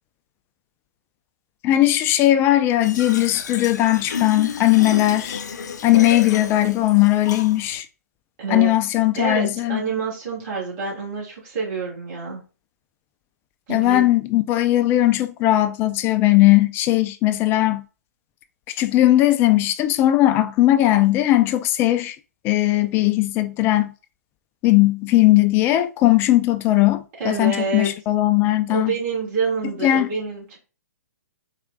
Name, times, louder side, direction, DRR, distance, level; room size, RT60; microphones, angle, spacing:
voice 1, 1.6-5.4 5.8-7.9 8.5-9.8 13.7-17.8 18.7-22.2 22.4-23.9 24.6-28.9 29.8-30.1, left 15 dB, 25° left, 0.4 m, -18 dB
Fill (with liquid), 2.8-7.8, left 6 dB, 75° left, 0.6 m, -32 dB
voice 2, 8.4-8.7 9.2-12.4 13.7-14.0 27.2-27.9 28.7-30.6, right 4 dB, 40° right, 2.3 m, -27 dB
4.4 x 2.4 x 3.6 m
hypercardioid pair, 130°, 10 cm